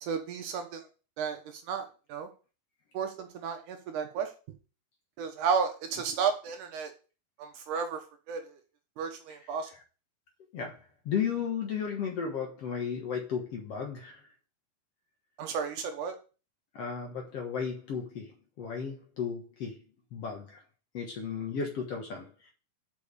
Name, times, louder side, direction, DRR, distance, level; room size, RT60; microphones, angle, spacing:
voice 1, 0.0-0.8 1.2-1.4 1.7-2.3 2.9-4.3 5.2-6.9 7.4-8.0 8.3-8.4 9.0-9.7 15.4-16.2, right 6 dB, 70° right, 5 dB, 2.2 m, -32 dB
voice 2, 11.1-14.2 16.8-19.8 20.1-20.6 20.9-22.5, left 6 dB, 55° left, 1 dB, 1.9 m, -34 dB
7.0 x 5.8 x 6.7 m, 0.34 s
omnidirectional pair, 4.2 m